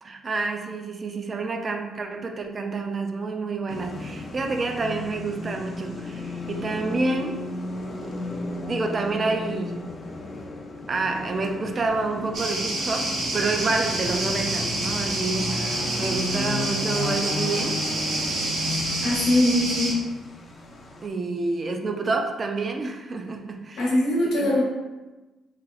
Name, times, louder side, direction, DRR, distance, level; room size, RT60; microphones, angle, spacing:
voice 1, 0.0-7.4 8.0-8.1 8.6-9.9 10.9-17.8 21.0-23.9 24.4-24.5, right 3 dB, 40° right, 4 dB, 0.3 m, -28 dB
sound 1, 3.7-21.1, left 2 dB, 40° left, 0.4 m, -34 dB
sound 2, 12.3-19.9, right 1 dB, 65° right, 0.7 m, -28 dB
voice 2, 19.0-20.0 23.8-24.6, left 1 dB, 80° left, -3 dB, 0.9 m, -22 dB
2.9 x 2.9 x 2.3 m, 1.1 s
cardioid pair, 90°, 0 cm